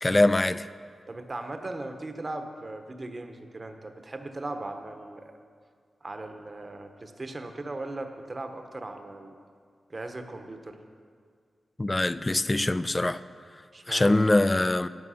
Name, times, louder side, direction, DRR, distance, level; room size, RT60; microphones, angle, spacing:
voice 1, 0.0-0.7 11.8-13.2 13.9-14.9, left 2 dB, 25° left, 0.4 m, -23 dB
voice 2, 1.1-5.3 6.0-9.4 9.9-10.8 13.7-14.3, right 2 dB, 35° right, 1.0 m, -38 dB
11.5 x 7.4 x 5.7 m
cardioid pair, 75°, 0 cm